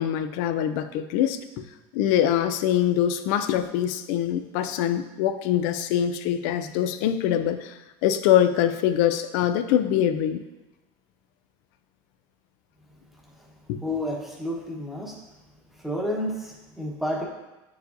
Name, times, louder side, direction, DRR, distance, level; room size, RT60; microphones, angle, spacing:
voice 1, 0.0-1.4 1.9-10.4 13.7-13.8, left 10 dB, 75° left, 10 dB, 0.5 m, -24 dB
voice 2, 13.8-15.2 15.8-17.3, left 1 dB, ahead, -3 dB, 1.1 m, -30 dB
8.0 x 4.8 x 2.6 m, 1.0 s
cardioid pair, 150°, 11 cm